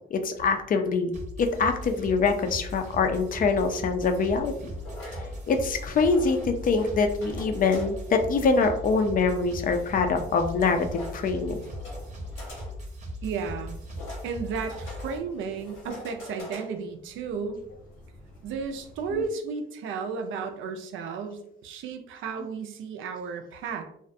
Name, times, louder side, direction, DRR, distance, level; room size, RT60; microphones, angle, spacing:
voice 1, 0.1-4.5 5.5-11.6 19.1-19.2, left 4 dB, 45° left, 6 dB, 0.4 m, -24 dB
sound 1, 1.1-15.2, equal, 35° right, 0.7 m, -39 dB
sound 2, 4.3-19.3, left 1 dB, 85° left, 1.1 m, -45 dB
voice 2, 13.2-13.8 14.2-17.6 18.4-23.8, right 5 dB, 80° right, 5 dB, 0.4 m, -33 dB
2.3 x 2.1 x 2.6 m, 0.76 s
cardioid pair, 90°, 20 cm